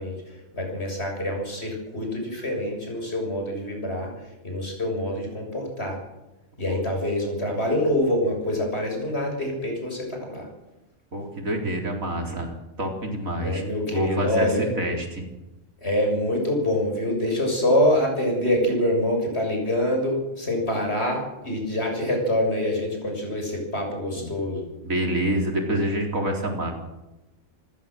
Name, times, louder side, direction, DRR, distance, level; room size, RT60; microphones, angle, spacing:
voice 1, 0.0-6.0 6.6-10.5 13.4-14.7 15.8-24.7, left 1 dB, 50° left, 2 dB, 7.2 m, -25 dB
voice 2, 11.1-13.6 13.9-15.3 24.1-24.3 24.8-26.7, right 1 dB, 85° right, 2 dB, 4.5 m, -27 dB
28.0 x 14.5 x 7.7 m, 1.0 s
omnidirectional pair, 1.4 m